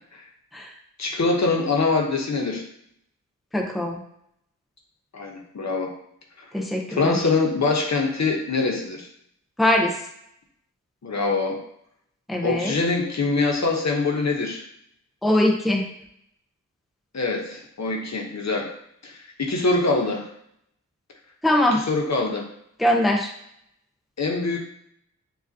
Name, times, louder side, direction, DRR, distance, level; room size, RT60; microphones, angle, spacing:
voice 1, 1.0-2.6 5.1-5.9 6.9-9.1 11.0-11.6 12.4-14.6 17.1-18.7 19.0-20.3 21.7-22.5 24.2-24.6, left 3 dB, 60° left, 1 dB, 0.9 m, -24 dB
voice 2, 3.5-4.0 6.5-7.2 9.6-9.9 12.3-12.7 15.2-15.8 21.4-21.8 22.8-23.3, left 1 dB, ahead, 1 dB, 0.6 m, -21 dB
7.4 x 2.5 x 2.7 m, 0.73 s
wide cardioid pair, 100°, 31 cm